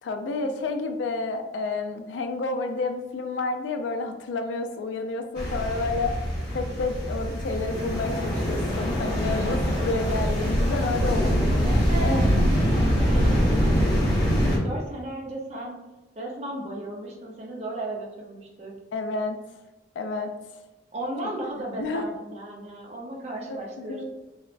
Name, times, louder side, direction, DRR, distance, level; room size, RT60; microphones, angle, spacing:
voice 1, 0.0-6.2 6.5-11.7 12.0-12.2 18.9-19.4 20.0-20.3 21.8-22.0 23.5-24.0, left 3 dB, 75° left, 7 dB, 0.3 m, -30 dB
sound 1, 5.4-14.6, equal, 20° left, 1.0 m, -24 dB
voice 2, 11.6-13.7 14.1-15.8 16.2-18.7 20.9-24.0, right 1 dB, 35° right, -2 dB, 0.5 m, -36 dB
3.1 x 2.0 x 2.4 m, 1.1 s
head